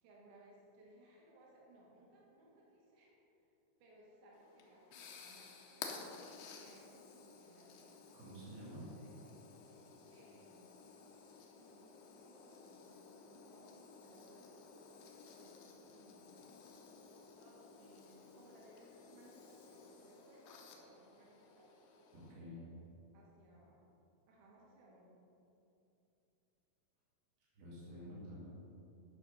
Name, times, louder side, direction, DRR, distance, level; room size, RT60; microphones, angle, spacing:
voice 1, 0.0-3.2 3.8-8.0 8.2-9.5 10.1-10.7 11.5-13.0 13.3-15.1 15.4-16.6 17.4-22.5 23.1-23.9 24.3-25.2, right 1 dB, 55° right, -4 dB, 2.8 m, -64 dB
sound 1, 4.3-22.3, left 5 dB, 85° left, 3.1 m, -55 dB
voice 2, 8.1-8.8 22.1-22.7 27.5-28.6, equal, 80° right, -8 dB, 4.4 m, -50 dB
11.5 x 6.5 x 5.4 m, 2.9 s
omnidirectional pair, 4.6 m